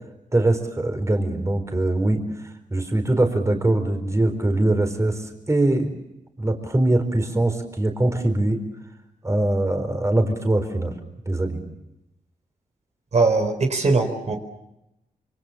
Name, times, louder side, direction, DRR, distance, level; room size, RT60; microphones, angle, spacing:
voice 1, 0.3-2.2 2.7-6.0 6.4-8.6 9.2-11.0 11.3-11.6, right 1 dB, 20° right, 5 dB, 4.5 m, -22 dB
voice 2, 13.1-14.3, right 3 dB, 55° right, 4 dB, 4.2 m, -20 dB
27.5 x 24.5 x 7.1 m, 0.87 s
cardioid pair, 75°, 14 cm